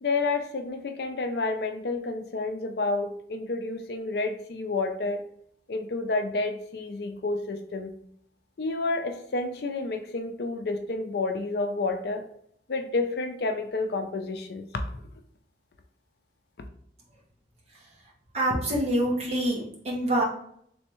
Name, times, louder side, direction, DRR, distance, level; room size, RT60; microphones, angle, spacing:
voice 1, 0.0-5.2 5.7-8.0 8.6-12.2 12.7-14.7 14.9-15.0, left 3 dB, 65° left, 6 dB, 0.4 m, -30 dB
voice 2, 18.3-20.2, right 1 dB, 35° right, -4 dB, 1.0 m, -26 dB
3.4 x 3.2 x 3.0 m, 0.66 s
head